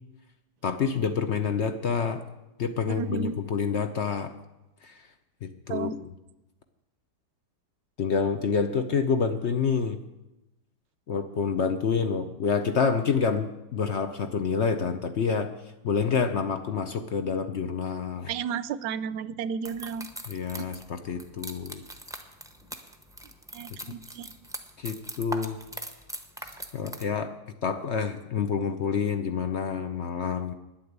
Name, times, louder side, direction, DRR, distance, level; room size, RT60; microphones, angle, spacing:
voice 1, 0.6-2.2 2.6-4.3 4.8-5.0 5.4-6.0 8.0-10.0 11.1-15.5 15.8-18.3 20.3-21.8 24.8-25.6 26.4-27.3 27.6-30.5, left 6 dB, 55° left, 8 dB, 0.8 m, -28 dB
voice 2, 2.9-3.4 5.7-5.9 18.3-20.1 23.5-24.3, right 7 dB, 90° right, 16 dB, 1.2 m, -33 dB
sound 1, 19.6-27.1, right 1 dB, 5° right, 0.5 m, -41 dB
10.5 x 8.6 x 8.1 m, 0.98 s
omnidirectional pair, 1.7 m